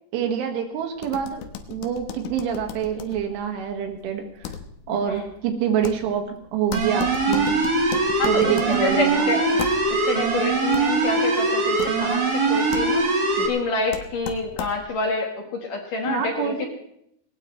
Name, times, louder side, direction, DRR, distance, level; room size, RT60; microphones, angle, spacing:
voice 1, 0.1-1.4 1.7-4.2 4.9-7.6 8.3-9.4 16.0-16.7, right 8 dB, 80° right, 4 dB, 4.3 m, -26 dB
sound 1, 1.0-15.1, left 8 dB, 85° left, 3.7 m, -37 dB
sound 2, 6.7-13.5, right 3 dB, 45° right, 1.1 m, -22 dB
voice 2, 8.2-9.6 10.0-13.0 13.4-16.7, left 3 dB, 60° left, 2 dB, 2.5 m, -27 dB
20.0 x 19.0 x 3.2 m, 0.74 s
omnidirectional pair, 5.5 m